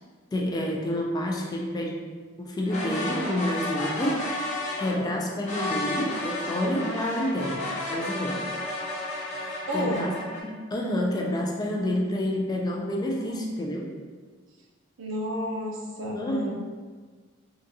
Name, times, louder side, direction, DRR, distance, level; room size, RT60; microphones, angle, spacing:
voice 1, 0.3-2.0 2.4-4.4 4.8-8.5 9.4-10.2 10.7-13.9 16.1-16.5, left 1 dB, 20° left, 0 dB, 0.3 m, -29 dB
sound 1, 2.6-5.0 5.4-10.4, left 1 dB, 35° left, 0.7 m, -32 dB
voice 2, 9.7-10.1 15.0-16.5, equal, 65° right, -1 dB, 0.6 m, -31 dB
3.8 x 2.3 x 2.7 m, 1.5 s
head